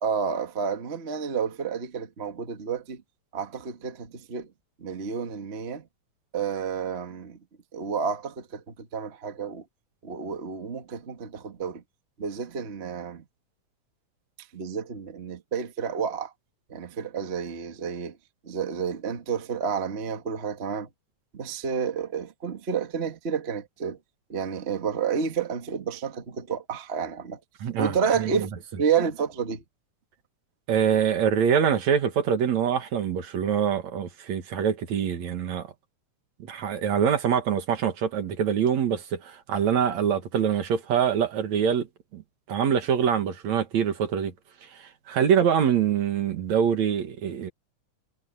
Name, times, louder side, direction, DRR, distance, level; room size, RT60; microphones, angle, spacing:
voice 1, 0.0-3.0 3.3-4.5 4.8-5.8 6.3-7.4 7.7-9.6 10.0-11.8 12.2-13.2 14.5-16.3 16.7-18.2 18.4-20.9 21.3-24.0 24.3-27.4 27.8-28.5 28.8-29.6, right 6 dB, 30° right, 1.1 m, -30 dB
voice 2, 27.6-28.3 30.7-35.7 36.5-41.9 42.1-42.2 42.5-44.3 44.8-47.5, right 8 dB, 65° right, 2.9 m, -24 dB
omnidirectional pair, 3.6 m